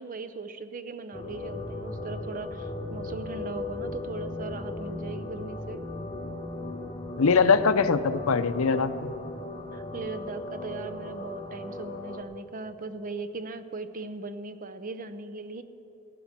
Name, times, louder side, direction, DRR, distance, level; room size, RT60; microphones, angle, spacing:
voice 1, 0.0-5.8 9.7-15.6, right 3 dB, 40° right, 11 dB, 0.6 m, -38 dB
sound 1, 1.1-12.2, left 2 dB, 20° left, 1.1 m, -37 dB
voice 2, 7.2-9.1, left 5 dB, 85° left, 12 dB, 0.6 m, -22 dB
16.5 x 9.2 x 7.3 m, 3.0 s
head